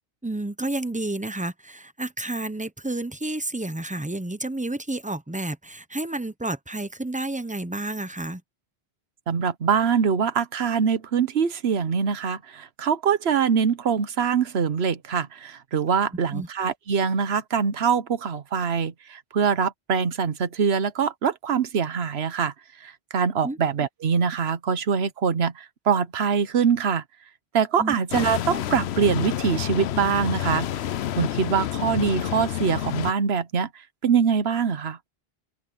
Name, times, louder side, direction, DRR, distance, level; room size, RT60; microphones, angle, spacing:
voice 1, 0.2-8.4 16.3-16.5 23.4-23.6 27.8-28.0, right 2 dB, 10° right, 0.7 m, -30 dB
voice 2, 9.3-27.0 27.5-30.7 31.1-35.0, right 6 dB, 80° right, 1.2 m, -24 dB
sound 1, 28.1-33.1, left 11 dB, 85° left, 0.9 m, -29 dB
open air
omnidirectional pair, 1.1 m